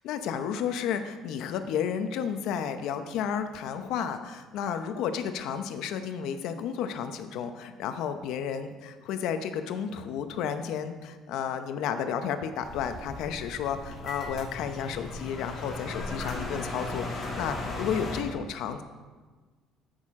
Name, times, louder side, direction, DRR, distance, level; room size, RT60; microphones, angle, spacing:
voice 1, 0.0-18.8, left 8 dB, 70° left, 8 dB, 0.7 m, -32 dB
sound 1, 12.6-18.2, left 2 dB, 25° left, 2.6 m, -36 dB
12.5 x 6.5 x 3.7 m, 1.4 s
cardioid pair, 145°, 0 cm